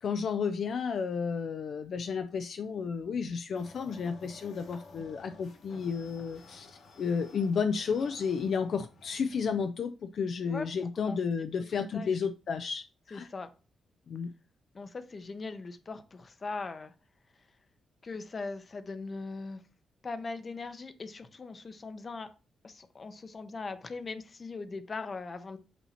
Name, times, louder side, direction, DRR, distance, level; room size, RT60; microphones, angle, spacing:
voice 1, 0.0-13.3 14.1-14.3, left 6 dB, 65° left, 0.4 m, -32 dB
sound 1, 3.5-9.7, left 2 dB, 85° left, 1.8 m, -53 dB
voice 2, 10.5-11.2 11.9-12.1 13.1-13.5 14.7-16.9 18.0-19.6 20.0-22.3 22.6-25.6, left 3 dB, 35° left, 0.7 m, -40 dB
8.2 x 2.8 x 4.2 m
cardioid pair, 110°, 0 cm